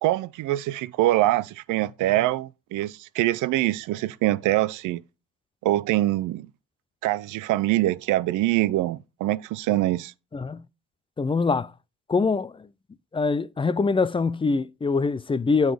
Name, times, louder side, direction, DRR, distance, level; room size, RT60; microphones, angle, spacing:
voice 1, 0.0-5.0 5.6-6.5 7.0-10.1, right 16 dB, 85° right, 0.5 m, -24 dB
voice 2, 10.3-10.7 11.2-11.7 12.1-12.7 13.1-15.7, left 4 dB, 20° left, 0.4 m, -24 dB
9.1 x 4.0 x 4.9 m
cardioid pair, 90°, 30 cm